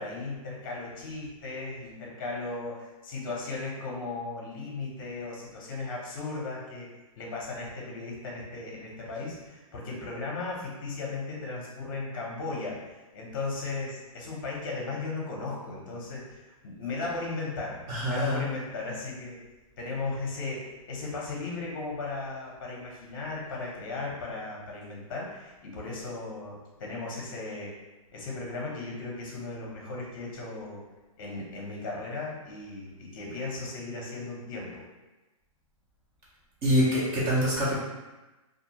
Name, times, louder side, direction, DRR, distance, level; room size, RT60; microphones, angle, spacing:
voice 1, 0.0-6.9 7.2-12.8 13.1-17.8 18.1-19.4 19.8-27.7 28.1-30.8 31.2-34.8, left 3 dB, 35° left, -3 dB, 0.7 m, -36 dB
voice 2, 17.9-18.4 36.6-37.7, equal, 15° right, -6 dB, 0.4 m, -25 dB
2.4 x 2.3 x 2.8 m, 1.1 s
hypercardioid pair, 165°, 18 cm